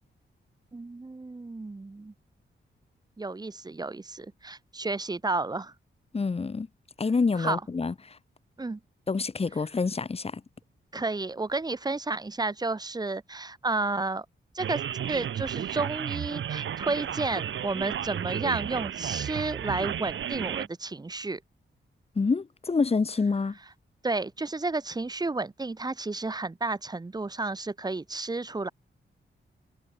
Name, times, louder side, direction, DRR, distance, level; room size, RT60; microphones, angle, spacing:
voice 1, 0.7-2.1 3.2-5.7 7.4-7.6 8.6-8.8 10.9-14.3 14.5-14.8 15.1-21.4 24.0-28.7, right 3 dB, 20° right, 4.1 m, -31 dB
voice 2, 6.1-6.7 7.0-8.2 9.1-10.4 22.2-23.6, left 4 dB, 30° left, 5.7 m, -27 dB
sound 1, 14.6-20.7, right 9 dB, 80° right, 2.0 m, -33 dB
wide cardioid pair, 155°, 20 cm